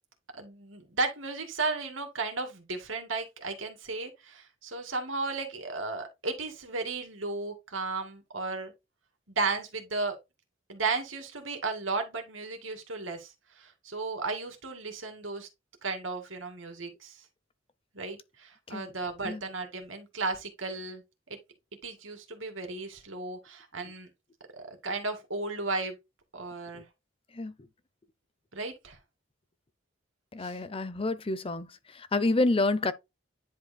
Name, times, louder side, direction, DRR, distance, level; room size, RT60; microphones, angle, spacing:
voice 1, 0.3-8.7 9.4-10.2 10.7-13.3 13.6-15.5 15.8-17.2 17.9-21.0 21.8-24.1 24.5-26.0 26.3-26.8 28.5-29.0 30.4-30.6, right 3 dB, 80° right, 2.3 m, -34 dB
voice 2, 30.3-31.7 32.1-32.9, left 2 dB, 30° left, 0.6 m, -28 dB
10.0 x 4.9 x 2.3 m
head